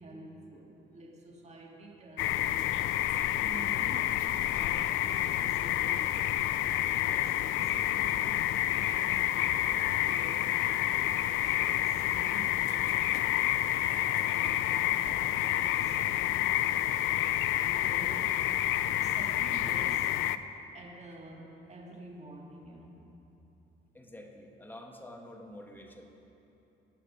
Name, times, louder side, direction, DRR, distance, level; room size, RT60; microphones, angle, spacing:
voice 1, 0.0-2.7 3.3-6.2 7.0-13.1 13.7-16.6 17.6-18.5 18.8-20.1 20.7-23.1, right 2 dB, 35° right, 0 dB, 2.0 m, -49 dB
sound 1, 2.2-20.4, left 13 dB, 85° left, 0.4 m, -29 dB
voice 2, 23.9-26.3, left 1 dB, 10° left, 3 dB, 1.3 m, -48 dB
18.0 x 6.5 x 5.1 m, 3.0 s
cardioid pair, 90°, 20 cm